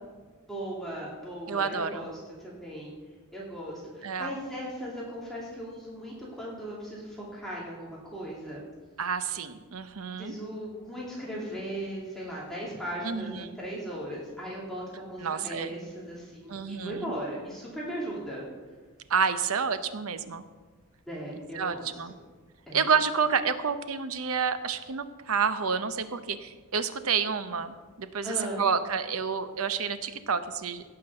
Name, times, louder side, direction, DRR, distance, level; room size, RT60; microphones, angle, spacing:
voice 1, 0.5-2.1 2.4-2.9 3.3-8.6 10.2-18.4 21.1-21.9 22.7-22.8 28.2-28.6, right 1 dB, ahead, -6 dB, 2.6 m, -37 dB
voice 2, 1.5-2.1 4.0-4.3 9.0-10.3 13.0-13.5 15.2-15.7 16.5-17.1 19.1-20.4 21.5-22.1 22.7-30.8, right 6 dB, 75° right, 11 dB, 0.8 m, -29 dB
16.5 x 6.0 x 6.6 m, 1.4 s
head